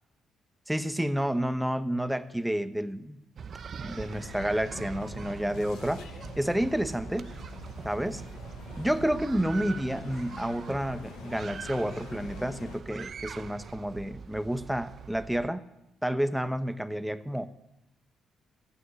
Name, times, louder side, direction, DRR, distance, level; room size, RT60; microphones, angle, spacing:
voice 1, 0.7-3.2 3.8-6.1 6.4-7.3 7.8-8.2 8.8-15.6 16.0-17.5, equal, 5° right, 11 dB, 1.0 m, -30 dB
sound 1, 3.4-15.5, right 6 dB, 50° right, 0.7 m, -43 dB
sound 2, 3.8-12.8, left 9 dB, 85° left, 0.8 m, -46 dB
14.5 x 9.8 x 9.8 m, 0.89 s
cardioid pair, 90°, 0 cm